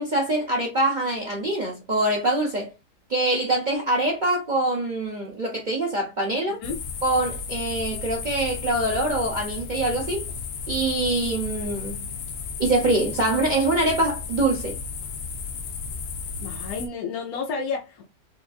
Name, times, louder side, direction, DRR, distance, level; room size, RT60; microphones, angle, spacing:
voice 1, 0.0-2.7 3.1-6.6 7.0-10.3 10.7-12.0 12.6-14.8, right 2 dB, 75° right, 0.4 m, -24 dB
sound 1, 6.6-16.9, left 5 dB, 90° left, 1.5 m, -34 dB
voice 2, 16.4-18.0, left 5 dB, 65° left, 1.1 m, -31 dB
5.1 x 2.4 x 2.4 m
omnidirectional pair, 2.0 m